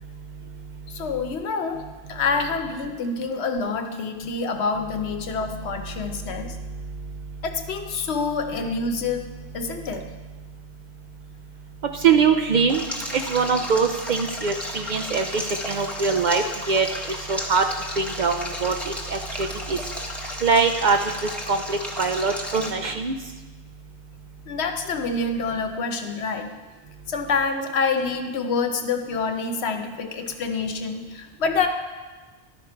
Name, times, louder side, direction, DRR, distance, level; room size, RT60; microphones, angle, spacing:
voice 1, 0.9-6.6 7.4-9.2 9.5-10.0 24.5-26.5 27.1-31.7, left 4 dB, 80° left, 6 dB, 1.0 m, -27 dB
voice 2, 12.0-12.8 13.1-16.9 17.3-17.6 18.0-18.7 19.1-19.8 20.4-21.0 21.5-23.1, right 5 dB, 55° right, 6 dB, 0.5 m, -22 dB
Stream, 12.7-22.7, left 1 dB, ahead, 0.8 m, -34 dB
11.5 x 5.1 x 4.4 m, 1.3 s
omnidirectional pair, 1.1 m